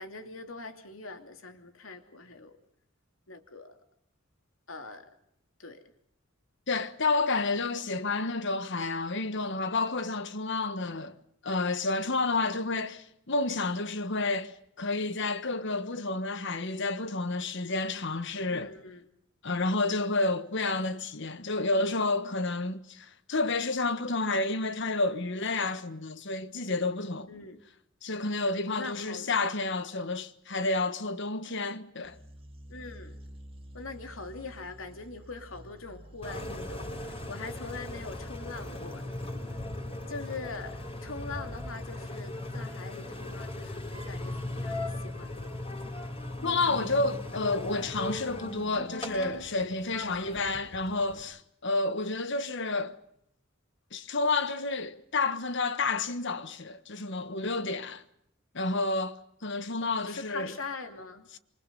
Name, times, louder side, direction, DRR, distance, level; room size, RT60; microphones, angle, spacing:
voice 1, 0.0-2.6 3.3-3.8 4.7-5.1 5.6-5.8 18.5-19.0 27.3-27.6 28.6-29.3 32.7-33.2 33.7-39.2 40.1-45.6 49.9-50.4 60.1-61.3, left 3 dB, 80° left, 3.0 m, -42 dB
voice 2, 6.7-11.2 11.4-18.7 19.4-27.3 28.0-32.2 46.4-53.0 53.9-58.0 58.5-60.5, left 3 dB, 65° left, 1.4 m, -30 dB
sound 1, 32.0-38.6, equal, 30° right, 2.2 m, -50 dB
Engine, 36.2-51.2, left 1 dB, 30° left, 6.6 m, -38 dB
27.0 x 25.5 x 5.4 m
head